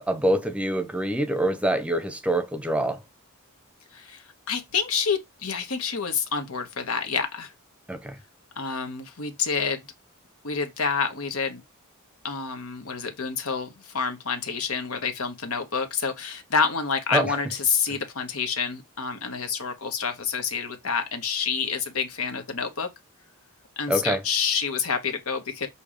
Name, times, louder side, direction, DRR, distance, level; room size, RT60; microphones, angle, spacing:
voice 1, 0.0-3.0 7.9-8.2 17.1-17.3 23.9-24.2, right 1 dB, 5° right, 0.7 m, -25 dB
voice 2, 3.9-7.5 8.6-9.8 10.4-11.6 12.2-22.9 23.8-25.7, left 5 dB, 70° left, 1.1 m, -28 dB
6.9 x 2.8 x 4.9 m
head